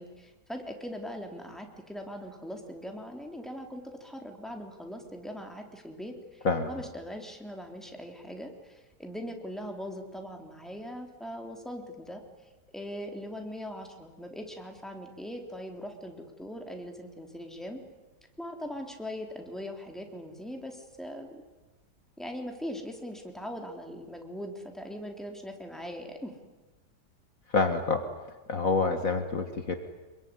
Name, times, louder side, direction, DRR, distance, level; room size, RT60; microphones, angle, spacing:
voice 1, 0.0-12.2 12.7-17.8 18.4-21.5 22.2-26.3, equal, ahead, 3 dB, 3.4 m, -40 dB
voice 2, 27.5-28.0 28.5-29.8, left 4 dB, 55° left, 7 dB, 2.1 m, -27 dB
26.5 x 22.5 x 9.8 m, 1.2 s
omnidirectional pair, 1.8 m